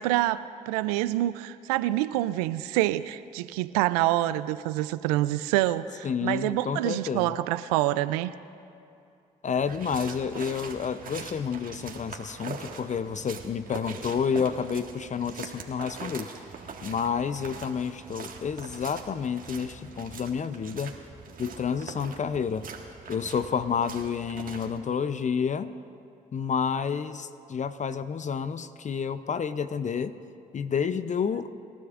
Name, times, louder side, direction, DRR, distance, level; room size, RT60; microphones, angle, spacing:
voice 1, 0.0-8.3 21.9-22.1, right 15 dB, 85° right, 15 dB, 0.4 m, -27 dB
voice 2, 6.0-7.4 9.4-16.3 16.8-20.9 21.4-22.6 23.1-25.7 26.3-30.1 30.5-31.5, left 6 dB, 40° left, 13 dB, 0.6 m, -30 dB
sound 1, 9.6-24.8, right 5 dB, 45° right, 1.8 m, -43 dB
27.0 x 12.5 x 2.5 m, 2.6 s
hypercardioid pair, 50°, 19 cm